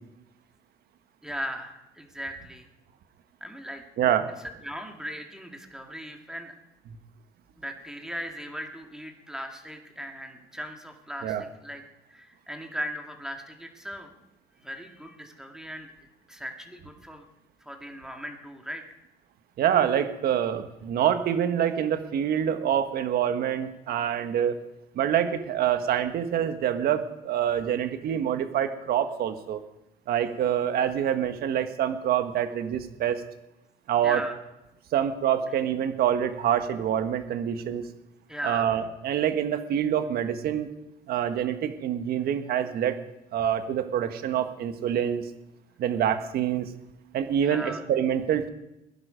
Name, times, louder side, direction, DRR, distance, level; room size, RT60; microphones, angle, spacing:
voice 1, 1.2-2.7 3.4-3.8 4.4-6.6 7.6-11.8 12.1-14.1 14.6-15.9 16.3-17.2 17.7-18.8 34.0-34.3 38.3-38.8 47.4-47.8, equal, 5° right, 3 dB, 2.0 m, -38 dB
voice 2, 4.0-4.3 11.2-11.4 19.6-24.6 24.9-29.6 30.1-33.2 33.9-34.2 34.9-37.8 38.4-40.7 41.1-43.0 43.3-45.2 45.8-46.7 47.1-48.5, right 9 dB, 65° right, 9 dB, 1.4 m, -26 dB
19.5 x 11.0 x 5.1 m, 0.90 s
cardioid pair, 110°, 17 cm